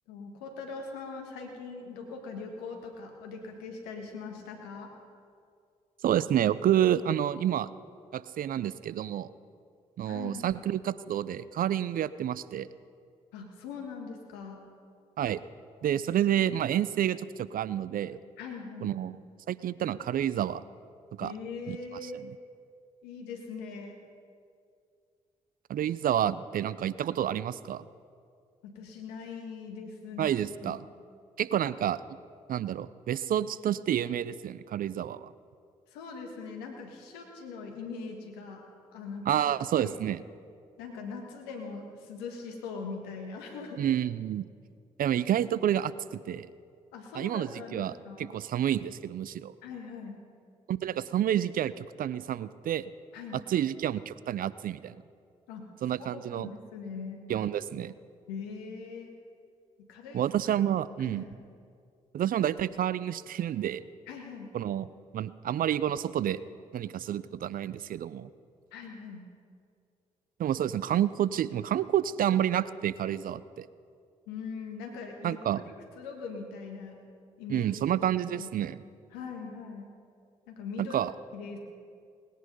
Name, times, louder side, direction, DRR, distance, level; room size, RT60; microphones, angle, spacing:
voice 1, 0.1-4.9 10.0-10.4 13.3-14.6 18.4-19.0 21.2-22.2 23.0-24.0 28.6-30.3 30.6-30.8 35.9-38.7 38.9-39.4 39.8-39.9 40.8-43.8 46.9-48.3 49.6-50.2 53.1-53.4 55.5-55.7 56.1-57.2 58.3-59.1 59.8-60.3 61.0-61.4 64.1-64.5 68.7-69.3 74.3-75.4 75.9-77.0 77.4-78.0 78.2-78.5 79.1-79.9 80.5-81.0 81.3-81.6, left 4 dB, 85° left, 3 dB, 1.7 m, -41 dB
voice 2, 6.0-7.7 8.1-9.3 10.0-12.7 15.2-15.4 15.8-18.2 18.8-19.1 19.5-20.6 21.2-21.3 21.7-21.8 22.0-22.3 25.7-27.8 30.2-30.8 31.4-32.0 32.5-35.3 39.3-40.2 43.8-44.4 45.0-46.5 47.1-49.5 50.7-52.9 53.5-55.0 55.8-56.5 57.3-57.9 60.1-61.3 62.1-63.8 64.5-64.9 65.1-66.4 66.7-68.3 70.4-73.7 75.2-75.6 77.5-78.8 80.8-81.1, right 10 dB, 60° right, 17 dB, 0.5 m, -29 dB
19.5 x 10.0 x 5.4 m, 2.3 s
hypercardioid pair, 40°, 16 cm